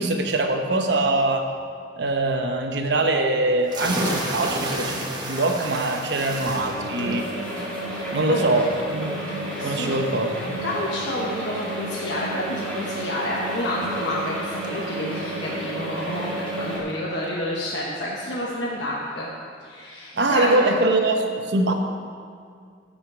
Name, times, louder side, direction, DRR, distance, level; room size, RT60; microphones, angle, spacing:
voice 1, 0.0-1.5 2.0-7.3 8.1-9.2 9.6-10.5 20.1-21.7, right 2 dB, 65° right, 4 dB, 0.9 m, -23 dB
sound 1, 3.7-17.0, right 1 dB, 25° right, 1.2 m, -36 dB
sound 2, 4.6-16.8, right 1 dB, 10° left, 2.1 m, -32 dB
voice 2, 9.6-9.9 10.6-19.3 19.6-20.6, left 1 dB, 70° left, -5 dB, 1.2 m, -29 dB
15.0 x 5.2 x 5.0 m, 2.2 s
head